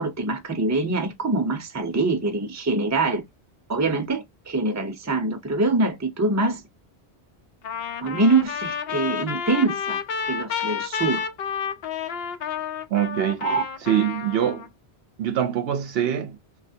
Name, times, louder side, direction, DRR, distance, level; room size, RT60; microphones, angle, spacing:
voice 1, 0.0-3.2 3.7-6.6 8.0-10.0 10.2-11.2 13.4-13.6, right 3 dB, 20° right, 0.6 m, -24 dB
Trumpet, 7.6-14.7, left 7 dB, 70° left, 0.8 m, -30 dB
voice 2, 12.9-13.5 13.8-14.7 15.2-16.4, right 10 dB, 70° right, 0.8 m, -24 dB
3.2 x 2.4 x 2.6 m
omnidirectional pair, 1.1 m